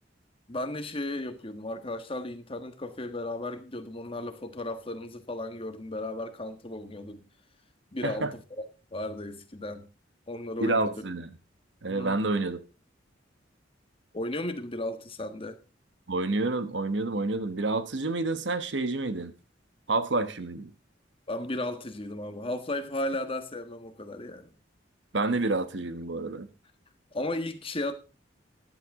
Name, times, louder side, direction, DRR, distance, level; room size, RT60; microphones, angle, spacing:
voice 1, 0.5-7.3 7.9-8.6 8.9-9.9 10.3-10.9 11.9-12.2 14.1-15.6 21.3-24.5 27.1-27.9, left 1 dB, 30° left, 1.4 m, -35 dB
voice 2, 10.6-11.3 11.8-12.6 16.1-19.3 19.9-20.7 25.1-26.5, right 2 dB, 70° right, 1.1 m, -28 dB
14.5 x 10.5 x 3.6 m
head